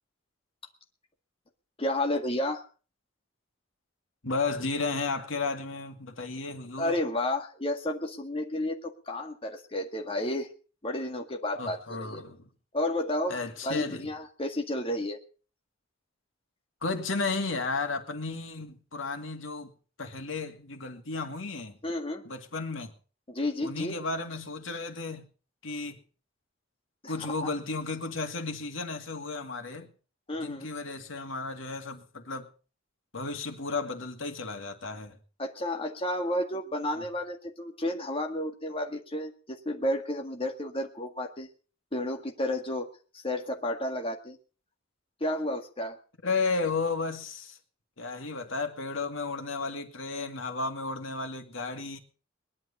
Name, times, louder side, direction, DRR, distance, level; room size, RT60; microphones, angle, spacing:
voice 1, 1.8-2.6 6.8-10.5 10.8-12.2 12.7-13.4 13.6-15.2 21.8-22.2 23.3-24.0 27.0-27.1 27.4-27.5 30.3-30.7 35.4-41.5 41.9-42.9 43.1-44.4 45.2-46.0, left 1 dB, 30° left, 1.9 m, -31 dB
voice 2, 4.2-6.9 11.6-12.5 13.3-14.1 16.8-19.7 20.0-21.8 22.2-22.9 23.6-25.2 25.6-26.0 27.1-29.9 30.4-32.5 33.1-35.2 46.2-47.6 48.0-52.0, left 3 dB, 80° left, 2.3 m, -33 dB
20.5 x 11.0 x 5.6 m
head